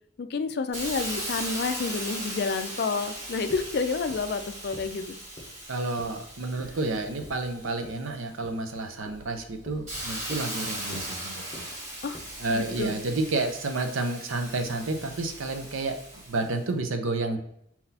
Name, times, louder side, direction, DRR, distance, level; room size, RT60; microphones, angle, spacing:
voice 1, 0.2-5.2 12.0-12.2 12.5-13.0, left 4 dB, 50° left, 9 dB, 0.3 m, -29 dB
Hiss, 0.7-8.3 8.8-16.5, right 1 dB, 35° right, 1.6 m, -38 dB
sound 1, 3.2-13.1, left 1 dB, 20° left, 0.8 m, -48 dB
voice 2, 5.7-11.6 12.4-16.0 16.3-17.4, right 2 dB, 80° right, 6 dB, 0.7 m, -30 dB
4.3 x 3.9 x 2.7 m, 0.75 s
head